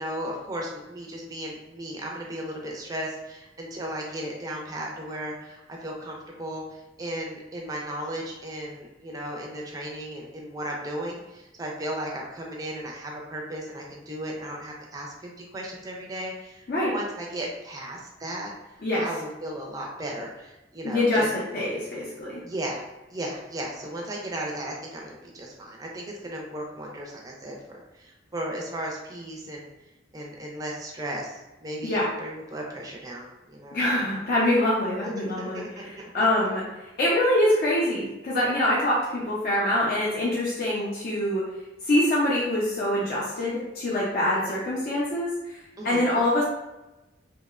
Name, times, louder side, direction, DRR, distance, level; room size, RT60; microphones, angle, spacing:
voice 1, 0.0-18.5 19.0-21.3 22.4-22.8 23.1-29.7 30.1-34.0 35.0-36.3 44.3-44.6 45.8-46.0, right 1 dB, 20° right, -1 dB, 0.4 m, -35 dB
voice 2, 20.8-22.4 31.8-32.1 33.7-41.5 41.8-46.4, left 1 dB, 55° left, -7 dB, 0.5 m, -25 dB
2.7 x 2.1 x 2.3 m, 1.0 s
head